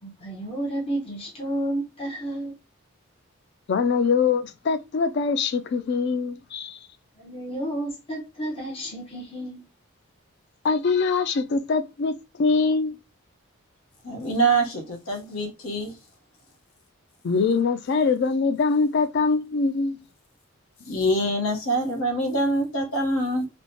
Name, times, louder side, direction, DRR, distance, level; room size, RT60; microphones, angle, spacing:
voice 1, 0.0-2.6 7.2-9.7, right 1 dB, 25° left, 0.7 m, -31 dB
voice 2, 3.7-6.8 10.6-13.0 17.2-20.0, left 4 dB, 50° left, 0.3 m, -23 dB
voice 3, 14.0-15.9 20.9-23.5, right 2 dB, 75° left, 0.9 m, -25 dB
3.1 x 2.1 x 2.7 m
head